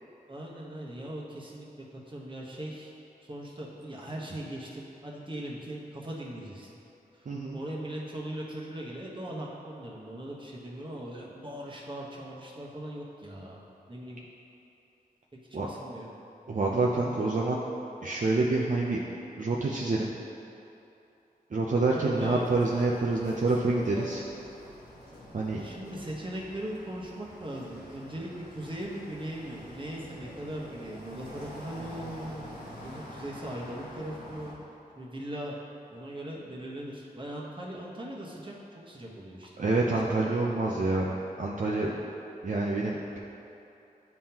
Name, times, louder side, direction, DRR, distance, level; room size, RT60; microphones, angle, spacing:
voice 1, 0.3-1.7 2.1-2.9 3.2-6.7 7.1-7.3 7.5-13.6 13.9-14.2 15.3-16.1 21.9-22.5 25.6-32.5 32.8-34.5 35.0-35.6 35.9-39.9 40.2-40.3, right 1 dB, 30° right, -4 dB, 1.2 m, -39 dB
voice 2, 7.3-7.6 15.5-15.7 16.5-17.6 18.0-19.0 19.4-20.1 21.5-24.2 25.3-25.6 39.6-41.1 41.4-41.9 42.4-43.2, right 3 dB, 55° right, -3 dB, 0.6 m, -27 dB
sound 1, 22.1-34.5, equal, 90° left, 1.4 m, -47 dB
10.5 x 3.7 x 2.9 m, 2.9 s
wide cardioid pair, 60°, 16 cm